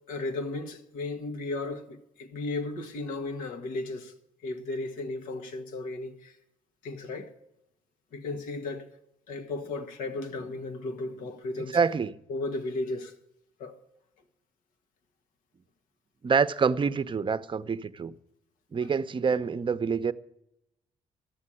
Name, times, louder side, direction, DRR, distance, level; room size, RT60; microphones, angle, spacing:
voice 1, 0.1-4.1 4.4-6.3 6.8-7.3 8.1-8.9 9.3-11.8 12.3-13.1 13.6-13.7, left 2 dB, 85° left, 1.4 m, -35 dB
voice 2, 11.7-12.2 16.2-18.1 18.7-20.1, right 5 dB, 35° right, 0.7 m, -26 dB
13.0 x 7.5 x 9.9 m
supercardioid pair, 65°, 14 cm